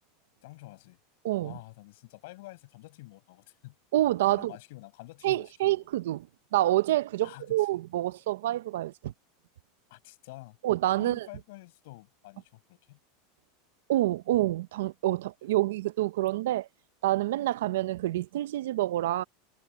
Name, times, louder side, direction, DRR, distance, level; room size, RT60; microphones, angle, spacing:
voice 1, 0.4-1.0 1.4-3.7 4.3-5.8 7.2-7.8 9.9-10.6 11.0-13.0, left 21 dB, 70° left, 6.1 m, -48 dB
voice 2, 3.9-4.5 5.2-6.3 6.5-9.1 10.6-11.3 13.9-16.7 17.0-19.2, right 15 dB, 85° right, 0.6 m, -27 dB
supercardioid pair, 145°, 0 cm